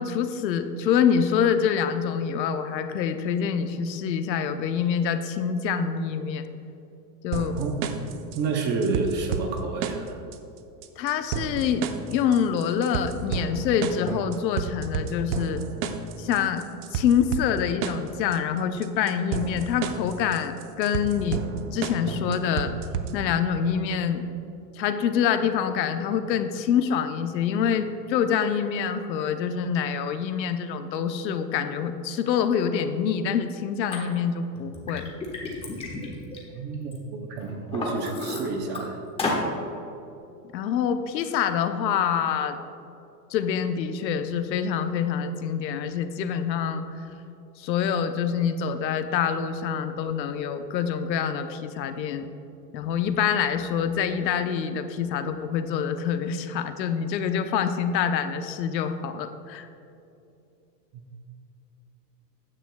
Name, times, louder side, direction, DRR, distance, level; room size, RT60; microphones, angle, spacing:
voice 1, 0.0-6.5 7.2-7.6 11.0-15.6 16.2-16.6 16.9-21.4 21.7-22.7 23.1-24.2 24.8-35.1 40.5-42.6 43.3-46.8 47.6-52.3 52.7-59.7, left 7 dB, 85° left, 9 dB, 0.9 m, -26 dB
sound 1, 7.3-23.3, right 7 dB, 60° right, 0.9 m, -32 dB
voice 2, 8.3-10.2 36.5-39.0 60.9-61.1, right 4 dB, 20° right, 4 dB, 0.6 m, -29 dB
Liquid, 33.9-34.0 34.6-37.0 37.4-38.8 39.2-39.5, left 2 dB, 10° left, 1.2 m, -31 dB
14.0 x 9.9 x 2.3 m, 2.8 s
supercardioid pair, 150°, 50 cm